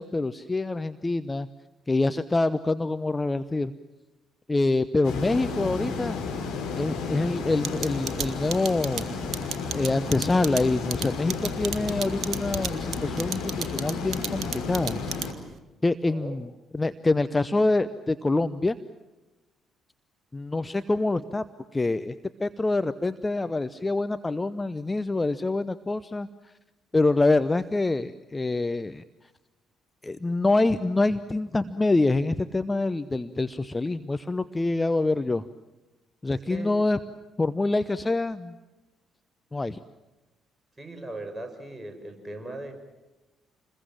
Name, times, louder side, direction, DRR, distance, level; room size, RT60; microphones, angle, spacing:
voice 1, 0.0-1.5 1.9-3.7 4.5-6.2 6.8-9.0 9.7-15.0 15.8-16.5 16.7-18.8 20.3-21.4 21.7-22.1 22.4-26.5 26.9-29.0 30.0-35.4 36.2-37.0 37.4-38.5 39.5-39.8, left 2 dB, 20° left, 12 dB, 0.8 m, -26 dB
sound 1, 5.0-15.3, left 4 dB, 65° left, 3.1 m, -32 dB
sound 2, 7.6-15.5, right 7 dB, 55° right, 1.6 m, -32 dB
voice 2, 16.0-16.4 36.3-36.7 40.8-42.7, right 2 dB, 15° right, 4 dB, 6.3 m, -39 dB
28.0 x 21.5 x 7.5 m, 1.1 s
figure-of-eight pair, 45°, 0 cm